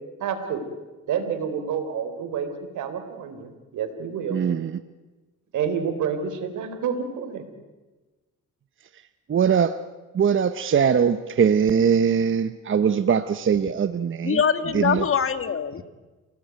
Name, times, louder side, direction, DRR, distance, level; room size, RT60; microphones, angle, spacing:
voice 1, 0.2-0.7 1.1-4.4 5.5-7.4, right 7 dB, 75° right, 8 dB, 4.0 m, -29 dB
voice 2, 4.3-4.8 9.3-9.8 10.1-14.4 14.7-15.0, right 7 dB, 40° right, 11 dB, 1.0 m, -21 dB
voice 3, 14.2-15.8, left 7 dB, 45° left, 11 dB, 1.9 m, -23 dB
28.5 x 18.5 x 9.3 m, 1.2 s
cardioid pair, 90°, 30 cm